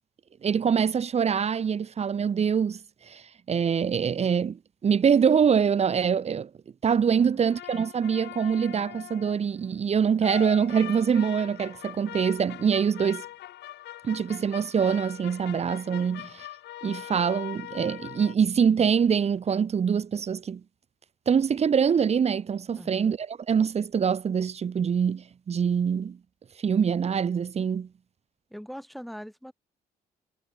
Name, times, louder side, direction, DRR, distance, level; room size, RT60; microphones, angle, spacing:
voice 1, 0.4-2.8 3.1-3.2 3.5-6.5 6.8-13.3 14.0-16.5 16.8-20.6 21.3-26.2 26.6-27.9, right 7 dB, 40° right, 0.7 m, -24 dB
sound 1, 7.4-9.5 10.2-18.4, left 14 dB, 85° left, 3.9 m, -41 dB
voice 2, 28.5-29.5, equal, ahead, 4.1 m, -42 dB
cardioid pair, 85°, 17 cm